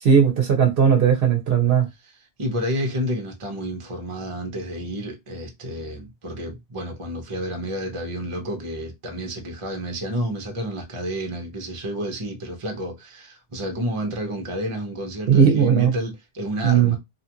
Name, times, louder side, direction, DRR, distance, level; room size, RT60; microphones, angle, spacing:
voice 1, 0.0-1.9 15.3-15.9 16.6-17.0, right 7 dB, 60° right, 0.9 m, -17 dB
voice 2, 2.0-17.0, equal, 30° right, 0.8 m, -30 dB
2.9 x 2.4 x 2.8 m
omnidirectional pair, 1.1 m